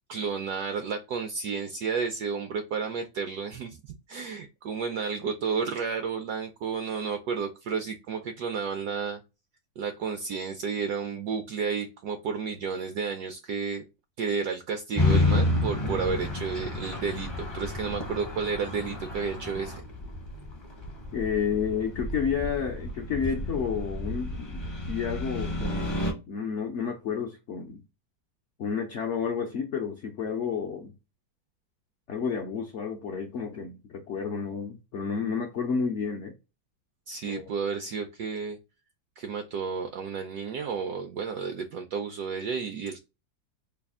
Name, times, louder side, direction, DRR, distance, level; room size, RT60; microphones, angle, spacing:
voice 1, 0.1-9.2 9.8-13.8 14.2-19.8 37.1-38.6 39.2-43.0, right 5 dB, 70° right, 1.0 m, -32 dB
sound 1, 15.0-26.1, left 2 dB, 30° left, 0.5 m, -30 dB
voice 2, 21.1-24.6 24.9-26.0 26.3-27.8 28.6-30.9 32.1-36.3 37.3-37.5, left 6 dB, 70° left, 0.6 m, -31 dB
3.3 x 2.3 x 3.5 m
omnidirectional pair, 2.0 m